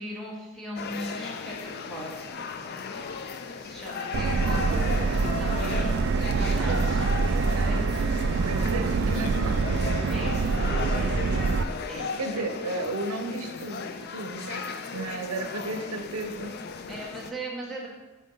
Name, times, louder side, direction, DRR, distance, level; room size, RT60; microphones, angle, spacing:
voice 1, 0.0-2.3 3.6-6.1 6.4-7.1 7.5-7.8 10.1-10.4 10.9-11.2 11.9-12.1 16.9-17.9, right 1 dB, ahead, -4 dB, 1.2 m, -39 dB
sound 1, 0.8-17.3, left 5 dB, 45° left, 0.3 m, -36 dB
Subway metro underground, 4.1-11.6, right 4 dB, 55° right, 0.3 m, -25 dB
voice 2, 8.4-9.6 11.7-16.6 16.9-17.0, right 2 dB, 80° right, 6 dB, 0.8 m, -34 dB
5.2 x 4.2 x 5.4 m, 1.1 s
head